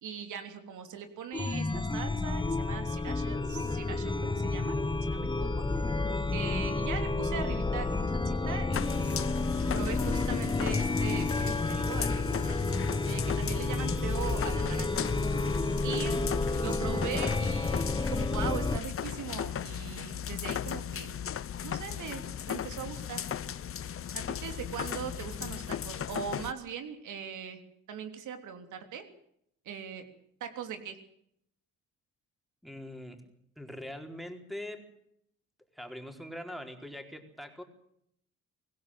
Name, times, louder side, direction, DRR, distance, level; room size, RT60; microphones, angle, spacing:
voice 1, 0.0-5.6 6.3-9.2 9.7-12.6 13.1-15.1 15.8-16.2 16.6-21.1 21.6-22.2 22.5-23.2 24.1-27.6 27.9-29.0 29.6-30.0 30.4-31.0, right 7 dB, 80° right, 7 dB, 3.3 m, -40 dB
Chime, 1.3-18.8, left 3 dB, 15° left, 1.3 m, -30 dB
sound 1, 8.7-26.5, left 9 dB, 45° left, 1.0 m, -37 dB
voice 2, 32.6-33.2 33.6-34.9 35.7-37.6, left 1 dB, ahead, 4 dB, 4.5 m, -42 dB
25.0 x 17.0 x 7.8 m, 0.72 s
cardioid pair, 90°, 30 cm